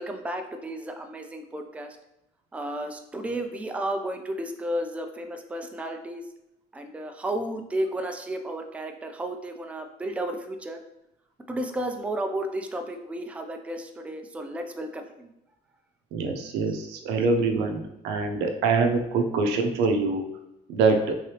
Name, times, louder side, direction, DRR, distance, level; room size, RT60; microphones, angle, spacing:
voice 1, 0.0-1.9 2.5-6.2 6.7-10.8 11.5-15.3 20.9-21.0, right 1 dB, 10° right, 5 dB, 0.4 m, -33 dB
voice 2, 16.1-20.3 20.7-21.1, right 4 dB, 90° right, 4 dB, 0.6 m, -24 dB
3.6 x 3.2 x 2.8 m, 0.87 s
cardioid pair, 110°, 17 cm